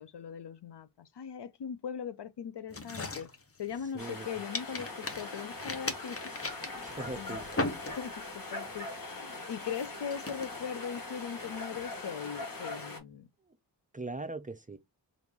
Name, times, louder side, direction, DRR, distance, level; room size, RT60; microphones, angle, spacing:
voice 1, 0.0-3.3 3.6-6.2 6.6-7.5 8.0-13.3, left 7 dB, 65° left, 0.5 m, -40 dB
sound 1, 2.7-4.2 4.5-8.3 8.7-9.0 9.5-11.8, left 2 dB, 30° left, 0.7 m, -39 dB
voice 2, 3.9-4.4 6.8-7.7 13.9-14.8, right 2 dB, 20° right, 0.5 m, -40 dB
sound 2, 4.0-13.0, left 2 dB, 50° left, 1.1 m, -42 dB
3.5 x 2.5 x 2.9 m
wide cardioid pair, 65°, 44 cm